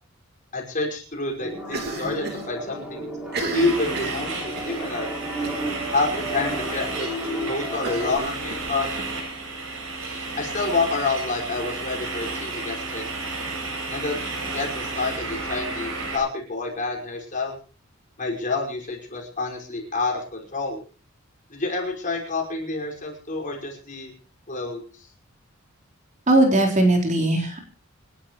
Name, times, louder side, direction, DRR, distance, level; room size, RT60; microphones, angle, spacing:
voice 1, 0.5-3.0 3.5-5.1 5.9-7.1 7.5-8.9 10.4-13.1 13.9-14.2 14.5-17.6 18.2-20.8 21.5-24.1 24.5-24.8, left 3 dB, 40° left, 0 dB, 5.6 m, -28 dB
sound 1, 1.4-8.2, equal, 5° right, 6.1 m, -33 dB
Cough, 1.7-2.5 2.7-2.8 3.2-4.8 5.4-5.7 6.1-6.2 6.5-6.6 7.8-9.1, right 3 dB, 55° right, 3.4 m, -33 dB
sound 2, 3.5-16.2, right 3 dB, 80° right, 7.8 m, -32 dB
voice 2, 26.3-27.7, right 1 dB, 35° right, 2 dB, 4.0 m, -19 dB
27.5 x 12.0 x 3.1 m, 0.35 s
head